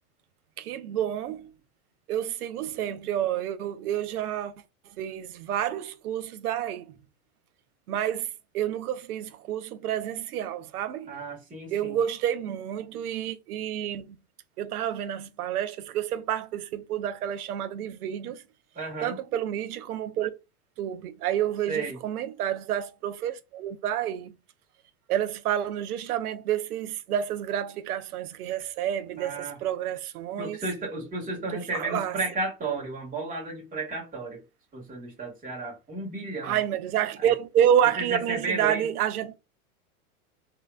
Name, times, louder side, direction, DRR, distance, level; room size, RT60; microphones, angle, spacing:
voice 1, 0.6-1.5 2.1-4.5 5.0-7.0 7.9-11.2 11.7-14.2 14.6-18.4 19.0-20.3 20.8-24.3 25.1-30.6 31.7-32.1 36.4-39.3, right 10 dB, 75° right, 0.6 m, -29 dB
voice 2, 11.1-12.0 18.7-19.2 21.7-22.0 29.2-29.6 30.4-34.4 34.7-36.6 37.2-37.3 38.0-38.9, right 3 dB, 20° right, 1.8 m, -33 dB
3.2 x 2.8 x 2.3 m
hypercardioid pair, 105°, 44 cm